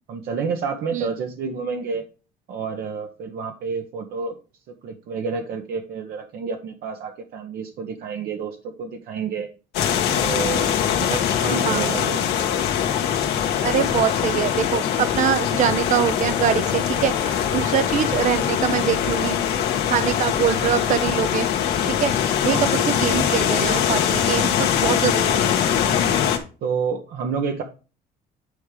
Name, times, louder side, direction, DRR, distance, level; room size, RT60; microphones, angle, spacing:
voice 1, 0.1-2.0 2.5-4.4 4.8-9.5 10.2-10.7 11.0-12.5 17.9-18.0 22.4-22.8 26.6-27.6, right 5 dB, 70° right, 3 dB, 1.1 m, -29 dB
sound 1, 9.7-26.4, left 9 dB, 80° left, 1.4 m, -22 dB
voice 2, 13.6-19.4 19.9-21.5 21.8-25.5, right 9 dB, 45° right, 12 dB, 0.6 m, -24 dB
9.8 x 3.7 x 4.9 m, 0.34 s
cardioid pair, 110°, 17 cm